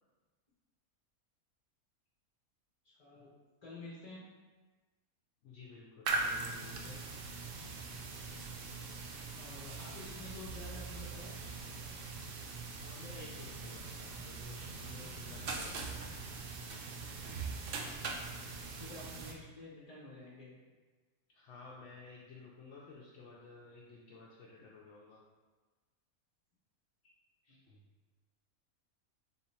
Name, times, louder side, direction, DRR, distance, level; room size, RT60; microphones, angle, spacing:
voice 1, 2.8-3.3 3.6-4.3 9.2-11.4 18.1-18.3 18.8-20.6 27.5-27.6, left 2 dB, 35° left, -7 dB, 0.7 m, -50 dB
voice 2, 5.4-7.6 12.8-16.2 21.3-25.2 27.4-27.8, left 3 dB, 65° left, -5 dB, 0.8 m, -54 dB
sound 1, 6.0-19.3, right 3 dB, 85° right, 0.4 m, -41 dB
3.7 x 2.8 x 4.2 m, 1.3 s
omnidirectional pair, 1.5 m